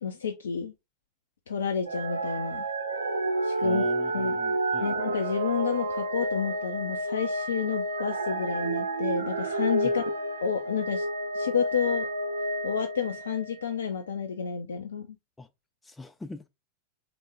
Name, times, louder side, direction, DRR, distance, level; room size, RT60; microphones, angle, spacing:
voice 1, 0.0-0.7 1.5-2.6 3.4-3.8 4.1-4.4 4.8-10.0 10.4-11.1 11.3-12.1 12.6-15.1, left 7 dB, 65° left, 0.6 m, -30 dB
sound 1, 1.9-13.8 14.4-14.5, right 2 dB, 75° right, 0.6 m, -30 dB
voice 2, 3.6-5.0 9.8-10.0 15.4-15.5 15.8-16.5, left 2 dB, 10° left, 0.4 m, -42 dB
3.9 x 3.5 x 3.3 m
figure-of-eight pair, 90°, 0 cm